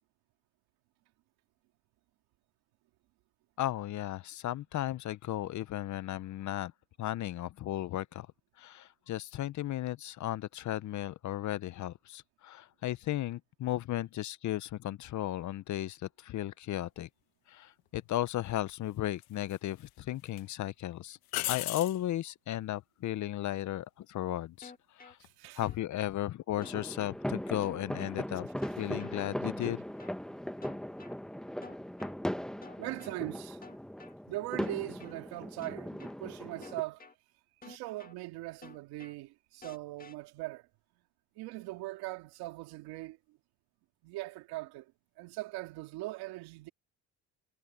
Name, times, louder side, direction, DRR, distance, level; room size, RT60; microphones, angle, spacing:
voice 1, 3.6-6.7 7.0-8.3 8.6-17.1 17.5-21.2 21.5-25.2 25.6-28.5 28.8-29.8, left 13 dB, 50° left, 0.8 m, -35 dB
sound 1, 17.9-18.1 19.2-19.9 20.3-20.4 21.3-22.0 25.1-25.5, left 18 dB, 75° left, 1.4 m, -36 dB
sound 2, 24.6-25.1 25.6-26.1 26.6-27.1 27.6-28.1 28.6-29.1 29.6-30.1 30.6-31.1 31.6-32.1 32.6-33.1 33.6-34.1 34.6-35.1 35.6-36.1 36.6-37.1 37.6-38.1 38.6-39.1 39.6-40.1, left 4 dB, 25° left, 1.9 m, -51 dB
voice 2, 25.2-25.6 30.5-30.8 32.8-33.6 34.3-37.1 37.6-40.7 41.4-43.4 44.0-44.9 45.2-46.7, right 19 dB, 80° right, 2.5 m, -40 dB
sound 3, 26.6-36.8, equal, ahead, 1.0 m, -39 dB
supercardioid pair, 90°, 37 cm